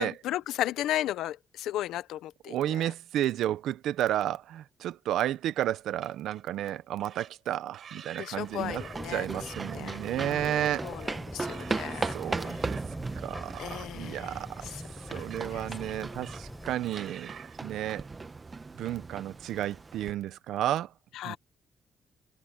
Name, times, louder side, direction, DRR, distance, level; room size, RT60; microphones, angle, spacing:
voice 1, 0.0-2.9 8.2-9.3 9.7-12.6 13.6-14.8 15.1-15.7 21.1-21.4, left 13 dB, 85° left, 0.8 m, -36 dB
voice 2, 2.5-8.8 9.1-10.8 12.1-12.8 13.2-13.5 13.9-14.5 15.1-17.3 17.6-18.1 18.8-20.9 21.2-21.4, right 12 dB, 80° right, 0.8 m, -32 dB
sound 1, 5.9-6.7 7.0-7.3 7.7-13.9 15.1-15.5 15.8-16.6 16.8-17.6, right 8 dB, 60° right, 4.3 m, -49 dB
sound 2, 8.3-20.1, right 3 dB, 25° right, 1.2 m, -38 dB
sound 3, 8.6-16.8, left 1 dB, 5° left, 4.9 m, -43 dB
cardioid pair, 90°, 0 cm